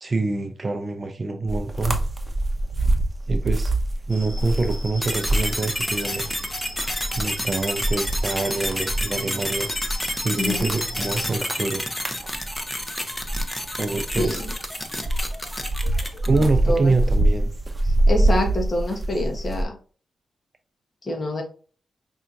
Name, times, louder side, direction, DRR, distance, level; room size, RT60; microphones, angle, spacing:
voice 1, 0.0-2.0 3.3-3.7 4.1-6.3 7.1-9.7 10.2-11.8 13.8-14.4 16.2-17.5, right 3 dB, 45° right, 5 dB, 0.5 m, -26 dB
sound 1, 1.5-6.3 6.6-19.6, right 1 dB, 25° right, 0.9 m, -25 dB
sound 2, 4.1-11.3, left 1 dB, 70° left, 1.2 m, -37 dB
sound 3, 5.0-16.6, left 1 dB, 15° left, 0.9 m, -30 dB
voice 2, 10.4-10.7 14.2-14.4 16.7-16.9 17.8-19.8 21.0-21.4, left 1 dB, 40° left, 1 dB, 1.1 m, -26 dB
5.5 x 2.8 x 2.5 m, 0.39 s
cardioid pair, 60°, 0 cm